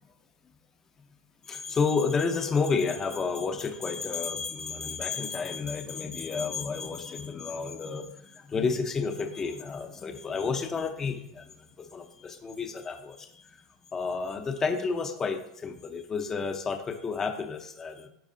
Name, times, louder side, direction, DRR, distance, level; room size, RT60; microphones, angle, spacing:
voice 1, 1.4-13.6 13.9-18.1, left 5 dB, 20° left, 5 dB, 0.8 m, -31 dB
12.5 x 4.7 x 2.7 m, 0.72 s
supercardioid pair, 130°, 2 cm